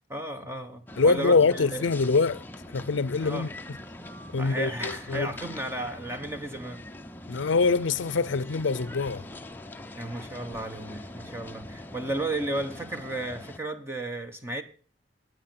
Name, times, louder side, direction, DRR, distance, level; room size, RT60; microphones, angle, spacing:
voice 1, 0.1-1.9 3.2-3.5 4.4-6.8 10.0-14.6, right 2 dB, 15° right, 1.2 m, -34 dB
sound 1, 0.9-13.6, left 1 dB, 10° left, 0.7 m, -43 dB
voice 2, 1.0-2.4 2.7-3.5 4.3-5.3 7.3-9.2, left 4 dB, 80° left, 0.5 m, -24 dB
17.0 x 9.3 x 5.8 m
head